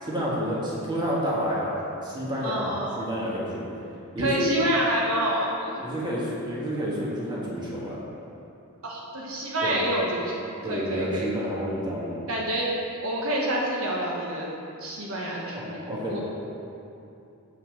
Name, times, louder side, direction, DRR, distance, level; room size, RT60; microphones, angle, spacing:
voice 1, 0.0-3.7 4.2-4.6 5.8-8.0 9.6-9.8 10.6-12.2 15.5-16.2, equal, 20° right, -6 dB, 1.7 m, -29 dB
voice 2, 2.4-3.1 4.2-5.7 8.8-11.3 12.3-12.7 13.0-14.5 14.8-16.2, right 1 dB, 70° right, -3 dB, 1.2 m, -28 dB
7.6 x 5.5 x 6.4 m, 2.8 s
head